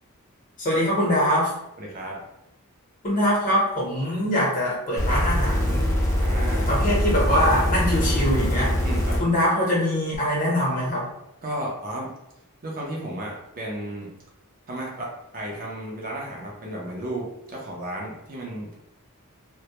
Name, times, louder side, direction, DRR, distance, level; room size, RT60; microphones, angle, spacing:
voice 1, 0.6-1.5 3.0-5.9 6.7-8.7 9.2-11.1, equal, 35° left, -5 dB, 0.8 m, -23 dB
voice 2, 1.8-2.2 6.0-6.7 8.8-9.2 11.4-12.1 12.6-14.1 14.7-18.7, right 1 dB, 40° right, -2 dB, 0.5 m, -33 dB
sound 1, 5.0-9.2 10.1-10.2, equal, 15° left, 0.5 m, -23 dB
2.2 x 2.0 x 2.8 m, 0.86 s
head